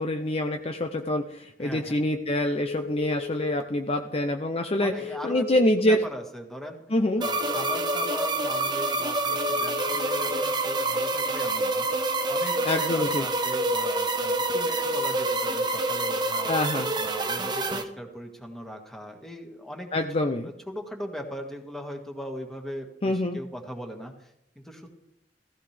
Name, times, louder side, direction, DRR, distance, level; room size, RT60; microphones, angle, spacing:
voice 1, 0.0-4.9 5.2-6.0 6.9-7.3 12.6-13.2 16.5-16.9 19.9-20.5 23.0-23.4, left 1 dB, 30° left, 5 dB, 0.6 m, -26 dB
voice 2, 1.6-2.0 4.8-5.5 5.8-6.8 7.2-11.9 12.3-16.5 17.0-19.9 20.4-24.9, equal, ahead, 2 dB, 1.8 m, -39 dB
Telephone, 2.5-3.6 4.8-5.9 7.1-8.2 9.3-10.4, left 9 dB, 55° left, 1.4 m, -37 dB
sound 1, 7.2-17.8, right 2 dB, 25° right, 1.1 m, -27 dB
16.0 x 15.5 x 3.4 m, 0.78 s
head